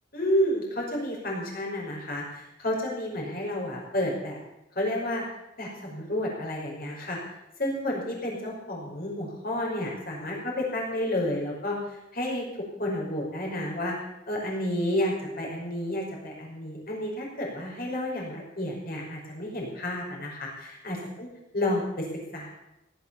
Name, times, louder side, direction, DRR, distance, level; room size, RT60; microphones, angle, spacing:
voice 1, 0.1-4.4 4.8-5.2 5.6-7.2 7.6-11.8 12.1-12.5 12.8-14.0 14.3-21.3 21.5-22.1 22.3-22.5, left 1 dB, 50° left, -1 dB, 5.4 m, -30 dB
17.0 x 10.5 x 7.0 m, 0.90 s
head